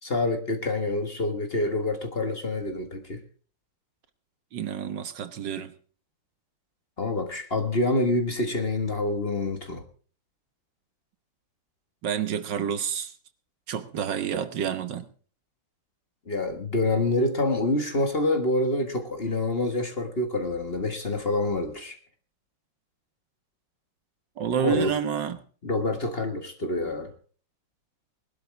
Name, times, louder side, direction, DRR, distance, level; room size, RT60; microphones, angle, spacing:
voice 1, 0.0-3.2 7.0-9.8 16.3-22.0 24.6-24.9 25.6-27.1, left 2 dB, 30° left, 7 dB, 1.6 m, -27 dB
voice 2, 4.5-5.7 12.0-13.1 13.7-15.0 24.4-25.4, right 8 dB, 65° right, 11 dB, 1.7 m, -29 dB
20.0 x 12.0 x 3.4 m, 0.40 s
omnidirectional pair, 2.1 m